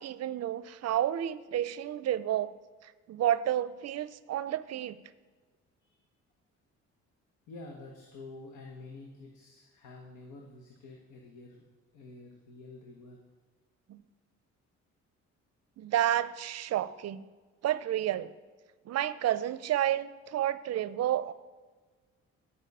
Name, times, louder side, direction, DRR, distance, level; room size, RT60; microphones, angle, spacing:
voice 1, 0.0-2.5 2.8-5.0 13.9-14.0 15.8-17.3 17.6-18.3 18.9-21.3, right 11 dB, 55° right, 16 dB, 0.5 m, -30 dB
voice 2, 7.5-11.6 11.9-13.2, left 2 dB, 85° left, 0 dB, 1.2 m, -48 dB
11.0 x 5.6 x 5.4 m, 1.4 s
cardioid pair, 90°, 30 cm